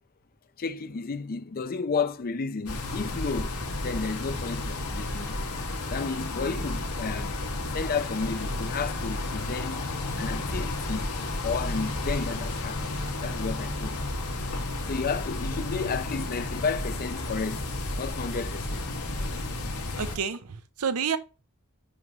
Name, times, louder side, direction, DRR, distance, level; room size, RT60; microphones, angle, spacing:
voice 1, 0.6-3.5 3.8-5.4 5.9-7.3 7.7-9.8 10.2-11.1 11.4-12.9 13.2-14.0 14.9-17.6 18.0-18.9, left 4 dB, 40° left, 0.5 m, -32 dB
sound 1, 2.7-20.2, left 2 dB, 85° left, 1.9 m, -32 dB
voice 2, 20.0-21.2, right 6 dB, 75° right, 0.7 m, -29 dB
7.5 x 3.1 x 5.4 m
head